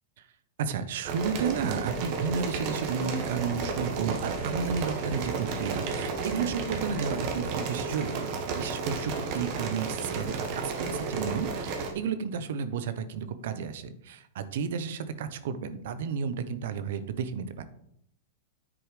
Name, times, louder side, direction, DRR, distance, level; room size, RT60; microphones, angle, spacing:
voice 1, 0.6-8.3 8.5-17.6, right 6 dB, 65° right, 12 dB, 0.8 m, -32 dB
sound 1, 1.0-11.9, right 4 dB, 50° right, 1.7 m, -32 dB
9.8 x 4.7 x 4.9 m, 0.73 s
hypercardioid pair, 110°, 0 cm